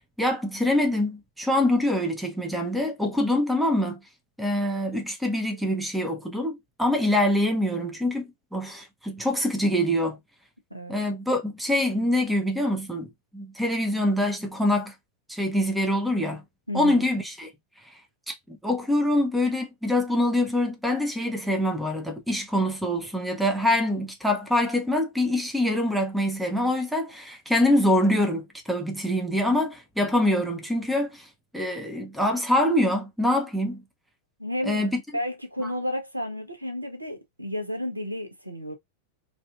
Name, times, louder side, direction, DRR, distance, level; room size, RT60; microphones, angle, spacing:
voice 1, 0.2-4.0 4.4-10.2 10.9-14.9 15.3-16.4 16.7-17.5 18.3-31.3 31.5-33.8 34.6-35.0, left 1 dB, 5° right, 0.7 m, -25 dB
voice 2, 16.7-17.1 34.4-34.8 35.1-38.7, left 1 dB, 85° right, 0.6 m, -32 dB
2.6 x 2.5 x 2.3 m
figure-of-eight pair, 90°, 0 cm